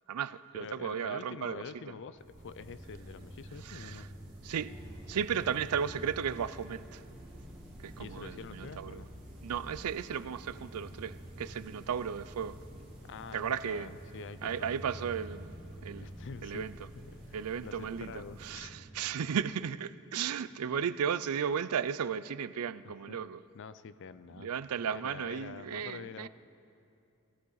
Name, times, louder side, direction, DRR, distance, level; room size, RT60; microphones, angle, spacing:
voice 1, 0.1-1.6 3.6-4.1 4.4-4.8 5.1-7.0 7.8-9.0 9.4-12.6 13.3-13.9 14.4-16.1 16.4-16.8 17.3-23.4 24.4-26.3, right 7 dB, 80° right, 0.4 m, -35 dB
voice 2, 0.6-4.1 8.0-9.1 13.0-15.0 15.9-18.8 22.8-23.3 23.5-26.3, left 5 dB, 55° left, 0.5 m, -47 dB
sound 1, 1.9-12.4, equal, 45° right, 2.5 m, -62 dB
sound 2, 2.2-19.7, equal, 25° right, 3.7 m, -49 dB
sound 3, 4.6-17.6, equal, 5° right, 3.6 m, -56 dB
17.5 x 16.0 x 4.0 m
head